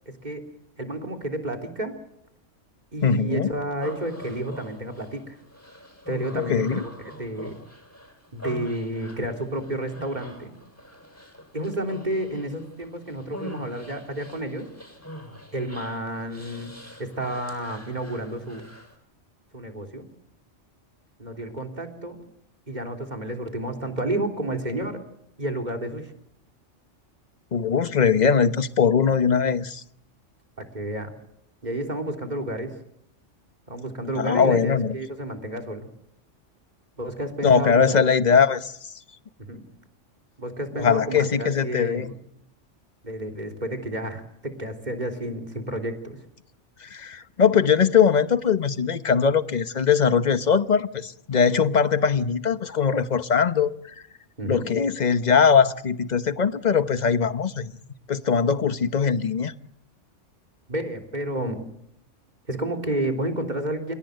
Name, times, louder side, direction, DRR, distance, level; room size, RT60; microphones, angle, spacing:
voice 1, 0.1-0.5 0.8-2.0 2.9-5.4 6.1-7.6 8.3-10.5 11.5-14.7 15.5-16.7 17.0-18.7 19.5-20.1 21.2-22.2 22.7-25.0 25.4-26.1 30.6-31.1 31.6-32.8 33.7-35.9 37.0-38.0 39.4-39.6 40.4-42.1 43.0-46.2 54.4-54.7 60.7-61.7 62.5-64.0, right 1 dB, 35° right, 3.6 m, -31 dB
voice 2, 3.0-3.5 6.3-6.8 27.5-29.8 34.2-34.9 37.4-38.7 40.8-42.1 46.8-53.9 54.5-57.7 58.1-59.5, left 6 dB, 40° left, 1.1 m, -21 dB
Human voice, 3.8-19.0, equal, 10° left, 7.1 m, -43 dB
30.0 x 17.5 x 8.0 m
omnidirectional pair, 1.3 m